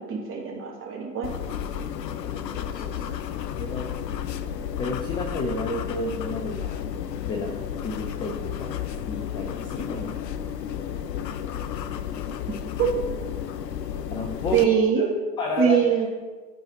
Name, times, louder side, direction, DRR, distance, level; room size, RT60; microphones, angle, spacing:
voice 1, 0.0-1.3 12.5-12.9 14.5-15.1 15.6-16.1, right 8 dB, 25° right, -3 dB, 2.9 m, -23 dB
sound 1, 1.2-14.6, left 9 dB, 80° left, 0.7 m, -32 dB
voice 2, 2.2-4.0 4.8-6.8 7.2-10.1 14.1-14.7 15.0-15.1 15.4-16.1, left 2 dB, 10° left, 2 dB, 0.3 m, -32 dB
13.0 x 4.8 x 4.5 m, 1.4 s
hypercardioid pair, 100°, 49 cm